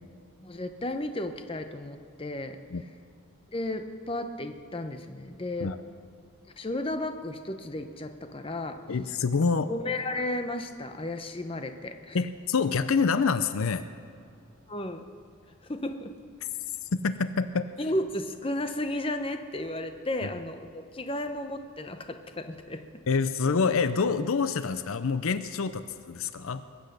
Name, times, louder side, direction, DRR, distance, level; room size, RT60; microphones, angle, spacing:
voice 1, 0.4-2.6 3.5-5.7 6.6-8.8 9.7-12.2 14.7-15.0 15.6-16.1 17.8-22.8, left 1 dB, 25° left, 7 dB, 0.8 m, -33 dB
voice 2, 8.9-9.7 12.1-13.9 16.9-17.7 20.2-20.3 23.1-26.6, left 5 dB, 70° left, 12 dB, 0.5 m, -26 dB
22.0 x 8.1 x 6.7 m, 2.4 s
head